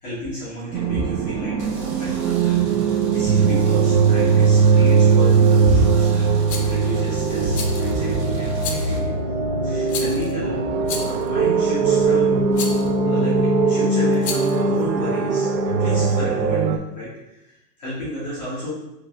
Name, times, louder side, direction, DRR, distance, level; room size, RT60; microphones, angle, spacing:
voice 1, 0.0-2.1 2.8-9.1 9.6-10.6 10.9-12.7 13.0-16.6 16.9-18.7, equal, 25° left, -10 dB, 1.0 m, -31 dB
sound 1, 0.7-16.8, right 5 dB, 90° right, 0.6 m, -19 dB
sound 2, 1.6-9.0, equal, 70° right, 1.3 m, -38 dB
Rattle, 6.5-6.8 7.5-8.0 8.6-9.0 9.9-10.3 10.8-11.3 12.5-12.9 14.1-14.6, left 5 dB, 70° left, 0.7 m, -31 dB
3.5 x 3.1 x 2.3 m, 0.94 s
hypercardioid pair, 165°, 49 cm